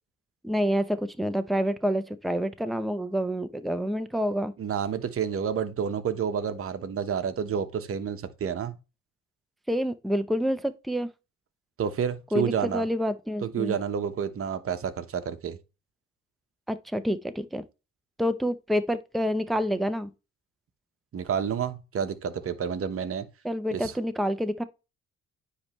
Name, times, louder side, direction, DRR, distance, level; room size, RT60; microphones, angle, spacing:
voice 1, 0.4-4.5 9.7-11.1 12.3-13.7 16.7-17.6 18.2-20.1 23.4-24.6, equal, ahead, 0.6 m, -28 dB
voice 2, 4.6-8.7 11.8-12.8 13.4-15.6 21.1-23.3 23.7-23.9, right 7 dB, 45° right, 1.0 m, -29 dB
9.6 x 3.3 x 3.1 m
cardioid pair, 90°, 30 cm